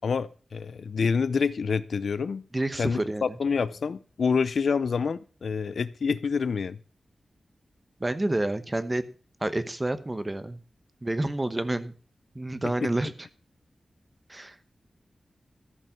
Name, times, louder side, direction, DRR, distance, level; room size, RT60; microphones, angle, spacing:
voice 1, 0.0-2.4 2.8-6.8 12.8-12.9, left 5 dB, 75° left, 0.5 m, -27 dB
voice 2, 2.5-3.2 8.0-9.0 9.4-10.6 11.0-11.9 12.3-13.1 14.3-14.5, right 1 dB, 20° right, 1.0 m, -29 dB
14.0 x 5.4 x 7.1 m
wide cardioid pair, 140°, 0 cm